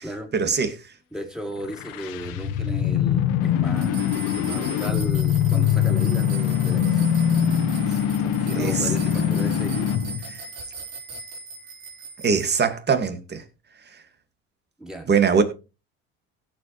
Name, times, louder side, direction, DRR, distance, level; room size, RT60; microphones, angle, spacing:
voice 1, 0.3-0.8 8.6-8.9 10.3-10.4 12.2-13.4 15.1-15.4, right 5 dB, 30° right, 2.4 m, -21 dB
voice 2, 1.1-7.1 7.8-7.9 8.2-10.0 14.8-15.1, right 1 dB, ahead, 4.0 m, -35 dB
sound 1, 1.6-10.2, left 9 dB, 75° left, 1.5 m, -23 dB
sound 2, 3.8-12.5, right 3 dB, 80° right, 5.6 m, -38 dB
17.0 x 7.8 x 3.3 m
supercardioid pair, 85°, 32 cm